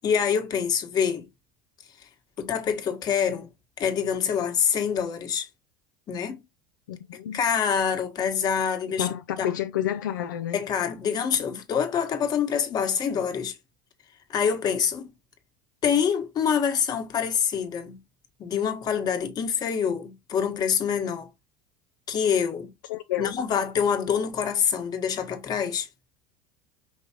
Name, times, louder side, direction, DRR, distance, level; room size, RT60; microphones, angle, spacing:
voice 1, 0.0-1.3 2.4-3.5 3.8-5.5 6.1-6.4 7.3-9.5 10.5-13.6 14.3-15.1 15.8-18.0 18.4-21.3 22.1-22.7 23.2-25.9, left 7 dB, 40° left, 1.3 m, -26 dB
voice 2, 6.9-7.4 9.0-10.6 22.9-23.3, left 11 dB, 80° left, 0.5 m, -29 dB
5.4 x 3.2 x 2.9 m
hypercardioid pair, 90°, 10 cm